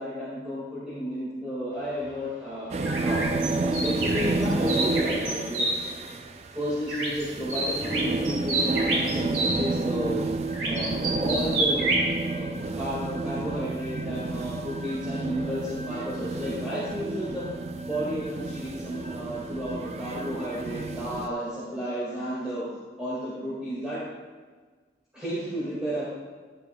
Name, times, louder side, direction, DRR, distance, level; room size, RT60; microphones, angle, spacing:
voice 1, 0.0-2.7 3.0-5.9 6.5-10.2 10.6-17.5 17.9-22.7 23.0-24.0 25.1-26.1, equal, 5° right, -10 dB, 2.1 m, -32 dB
sound 1, 2.7-21.3, right 2 dB, 35° right, 0.4 m, -31 dB
sound 2, 2.8-5.7 6.9-7.2 7.5-9.6 10.5-12.1, right 2 dB, 85° right, 2.5 m, -28 dB
11.0 x 10.5 x 2.3 m, 1.4 s
head